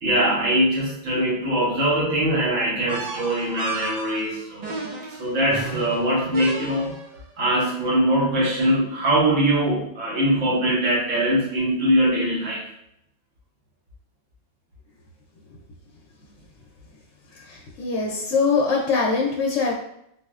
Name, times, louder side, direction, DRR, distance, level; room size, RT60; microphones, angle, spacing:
voice 1, 0.0-4.7 5.2-7.0 7.4-12.6, right 1 dB, 90° right, -6 dB, 1.3 m, -22 dB
alien voise, 2.9-7.2, right 3 dB, 65° right, 0.3 m, -34 dB
voice 2, 17.5-19.7, left 4 dB, 80° left, -3 dB, 0.9 m, -22 dB
3.9 x 2.1 x 2.3 m, 0.75 s
omnidirectional pair, 1.3 m